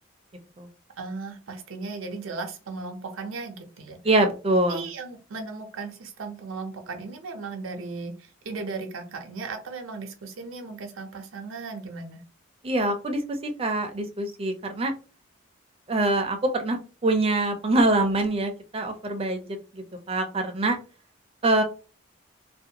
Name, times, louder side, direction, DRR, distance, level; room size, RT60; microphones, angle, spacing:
voice 1, 1.0-4.0 4.7-12.2, right 4 dB, 85° right, 4 dB, 0.5 m, -36 dB
voice 2, 4.0-4.9 12.6-14.9 15.9-19.5 19.7-20.8 21.4-21.6, right 2 dB, 30° right, 5 dB, 0.4 m, -24 dB
2.5 x 2.1 x 2.8 m, 0.35 s
head